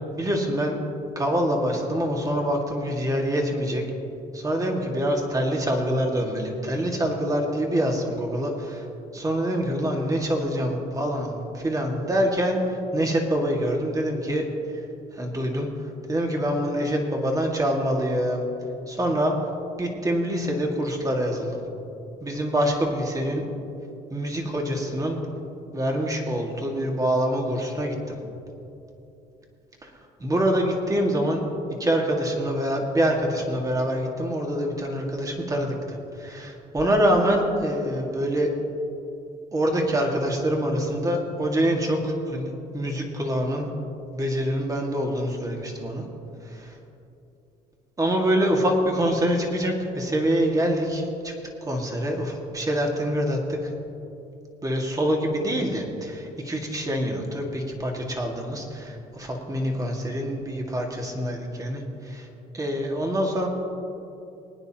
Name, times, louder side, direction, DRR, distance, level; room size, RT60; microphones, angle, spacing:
voice 1, 0.1-0.8 1.2-3.8 4.3-8.9 9.1-14.5 15.1-15.7 16.1-18.4 18.9-19.3 19.8-21.6 22.2-23.4 24.1-25.2 25.7-28.2 29.8-29.9 30.2-31.4 31.8-38.5 39.5-43.7 44.1-46.0 46.4-46.8 48.0-51.3 51.6-53.7 54.6-62.3 62.5-63.5, equal, 20° right, 1 dB, 2.1 m, -25 dB
23.5 x 9.6 x 3.0 m, 2.8 s
cardioid pair, 110°, 17 cm